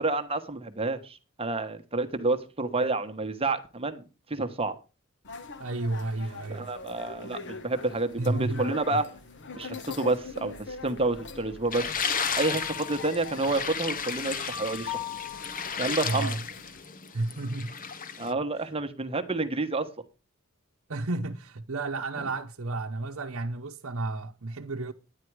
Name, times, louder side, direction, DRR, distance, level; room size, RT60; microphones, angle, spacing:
voice 1, 0.0-4.0 4.3-4.7 6.5-9.1 9.5-11.9 12.4-15.0 15.8-16.4 18.2-19.9, right 2 dB, 25° right, 1.2 m, -29 dB
sound 1, 5.2-16.8, left 6 dB, 55° left, 1.2 m, -42 dB
voice 2, 5.6-6.7 8.2-9.0 16.0-16.4 17.1-17.7 18.6-18.7 20.9-24.9, right 2 dB, 65° right, 0.9 m, -32 dB
sound 2, 11.7-18.3, left 6 dB, 40° left, 1.0 m, -34 dB
11.0 x 10.0 x 4.7 m
head